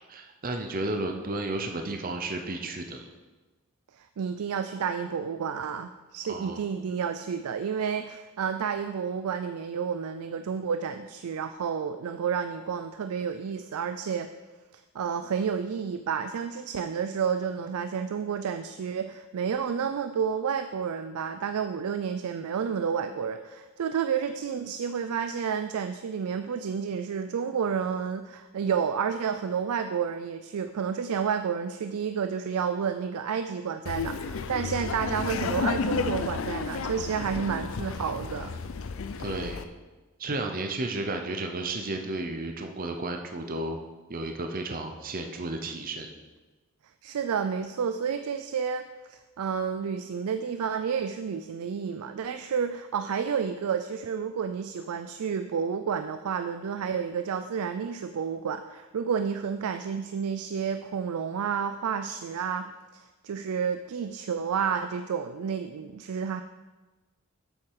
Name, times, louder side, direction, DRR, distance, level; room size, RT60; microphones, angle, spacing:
voice 1, 0.1-3.0 6.3-6.6 39.2-39.7 40.2-43.8 44.1-46.1, right 2 dB, 40° right, 4 dB, 0.7 m, -33 dB
voice 2, 4.0-14.3 14.7-38.6 47.0-48.8 49.1-66.4, right 7 dB, 85° right, 8 dB, 0.4 m, -30 dB
Laughter, 33.9-39.6, left 5 dB, 60° left, 0.5 m, -32 dB
7.9 x 7.1 x 4.7 m, 1.2 s
head